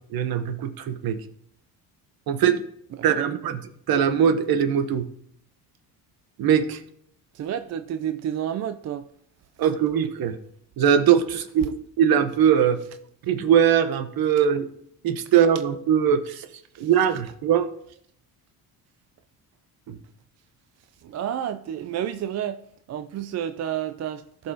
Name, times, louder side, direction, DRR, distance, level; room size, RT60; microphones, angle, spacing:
voice 1, 0.1-1.2 2.3-2.6 3.0-3.6 3.9-5.1 6.4-6.8 9.6-10.3 10.8-12.8 13.3-14.7 15.0-16.5 16.8-17.7 19.9-20.0, right 8 dB, 60° right, 1.0 m, -21 dB
voice 2, 2.9-3.4 7.3-9.1 11.6-11.7 16.7-16.9 21.0-24.5, right 10 dB, 40° right, 0.4 m, -31 dB
15.0 x 5.5 x 2.8 m
cardioid pair, 105°, 40 cm